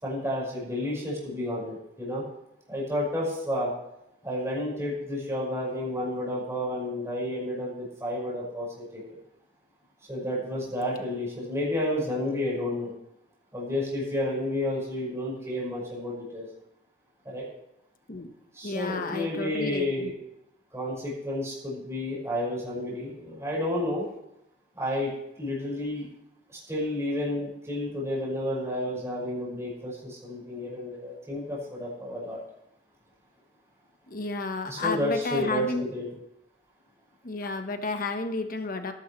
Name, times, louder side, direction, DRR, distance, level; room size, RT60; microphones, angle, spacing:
voice 1, 0.0-2.2 2.7-3.7 4.2-9.1 10.1-12.9 13.5-16.5 17.3-17.4 18.5-20.1 20.7-24.1 24.8-25.1 25.4-26.1 26.7-32.4 34.7-36.1, left 1 dB, 15° right, -5 dB, 5.3 m, -31 dB
voice 2, 18.6-20.1 34.1-35.8 37.2-38.9, left 3 dB, 50° left, 6 dB, 1.2 m, -31 dB
18.5 x 11.0 x 3.3 m, 0.83 s
head